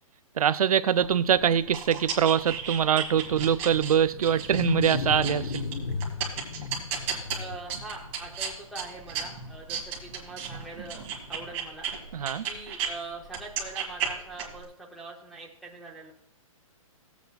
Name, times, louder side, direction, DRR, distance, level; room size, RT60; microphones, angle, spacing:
voice 1, 0.4-5.6 12.1-12.4, right 8 dB, 85° right, 0.5 m, -23 dB
sound 1, 1.0-12.9 13.3-14.6, right 7 dB, 20° right, 1.5 m, -35 dB
Wild animals, 3.5-8.5, left 4 dB, 45° left, 1.0 m, -34 dB
voice 2, 7.3-11.0 11.3-11.9 12.4-16.1, right 3 dB, ahead, 0.7 m, -42 dB
16.0 x 8.2 x 2.3 m
hypercardioid pair, 175°, 18 cm